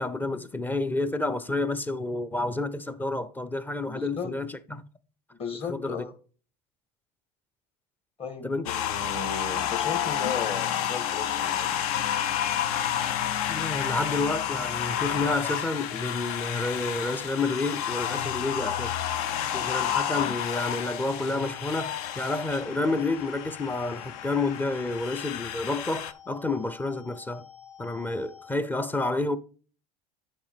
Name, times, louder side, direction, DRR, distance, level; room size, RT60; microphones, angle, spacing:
voice 1, 0.0-4.8 5.7-6.0 8.4-8.7 13.5-19.0 19.5-27.4 27.8-29.4, left 2 dB, 10° left, 0.6 m, -29 dB
voice 2, 3.9-4.4 5.3-6.1 8.2-11.8, left 6 dB, 30° left, 1.5 m, -36 dB
sound 1, 8.7-26.1, left 10 dB, 65° left, 0.6 m, -30 dB
sound 2, 18.3-28.5, left 8 dB, 45° left, 1.3 m, -50 dB
9.7 x 5.0 x 3.5 m
hypercardioid pair, 95°, 21 cm